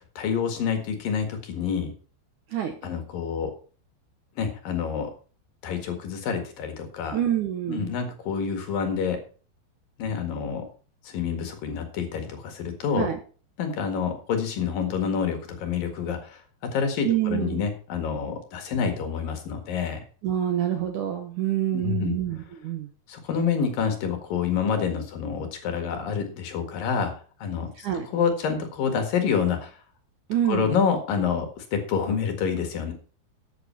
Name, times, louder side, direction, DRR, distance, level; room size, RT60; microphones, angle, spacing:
voice 1, 0.2-1.9 2.8-3.5 4.4-5.1 5.6-7.2 7.7-9.2 10.0-10.7 11.0-13.1 13.6-20.0 21.7-22.2 23.1-27.1 27.4-29.7 30.5-32.9, left 6 dB, 60° left, 5 dB, 3.3 m, -27 dB
voice 2, 7.1-8.0 12.9-13.2 17.0-17.7 20.2-22.9 27.8-28.1 30.3-30.7, right 11 dB, 65° right, 5 dB, 2.0 m, -27 dB
13.0 x 8.4 x 4.4 m, 0.39 s
omnidirectional pair, 4.8 m